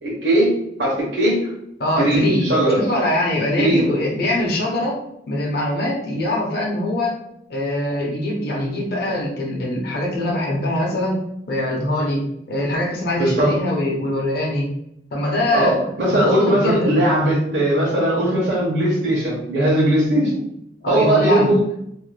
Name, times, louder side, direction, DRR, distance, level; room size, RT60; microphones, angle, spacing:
voice 1, 0.0-1.5 2.0-2.8 3.6-3.9 13.2-13.6 15.5-20.4 20.9-21.6, right 1 dB, 75° right, -6 dB, 0.8 m, -19 dB
voice 2, 1.8-5.0 5.3-7.2 7.5-14.7 15.1-15.8 16.1-17.0 20.8-21.5, left 1 dB, 60° left, -2 dB, 0.7 m, -23 dB
2.6 x 2.1 x 3.2 m, 0.77 s
head